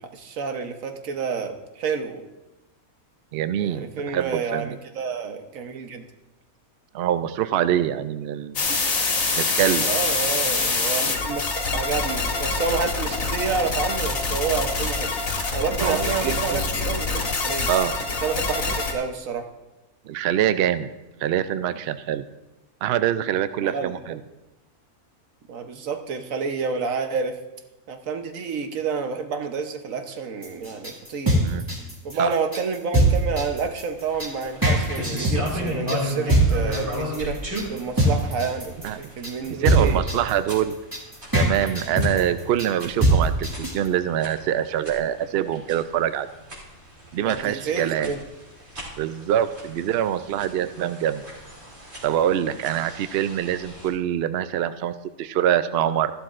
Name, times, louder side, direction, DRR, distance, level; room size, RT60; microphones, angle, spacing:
voice 1, 0.0-2.2 3.6-6.0 8.7-8.8 9.8-15.1 15.5-17.7 18.2-19.5 23.6-23.9 25.5-27.4 27.9-31.4 32.0-37.4 37.7-40.0 47.2-48.2, right 5 dB, 65° right, 6 dB, 1.2 m, -29 dB
voice 2, 3.3-4.8 6.9-8.6 9.4-9.9 15.8-16.6 17.7-18.0 18.7-18.8 20.0-20.9 21.2-22.2 22.8-24.2 31.4-31.7 32.2-32.3 38.8-39.0 39.4-40.8 41.3-46.3 47.1-48.1 49.0-51.2 52.0-56.1, right 10 dB, 85° right, 12 dB, 0.5 m, -24 dB
sound 1, 8.6-18.9, left 3 dB, 65° left, 1.8 m, -25 dB
sound 2, 30.4-43.9, right 1 dB, 15° right, 1.8 m, -22 dB
sound 3, 34.0-53.9, left 1 dB, 45° right, 2.7 m, -36 dB
14.0 x 11.5 x 2.5 m, 1.0 s
omnidirectional pair, 1.6 m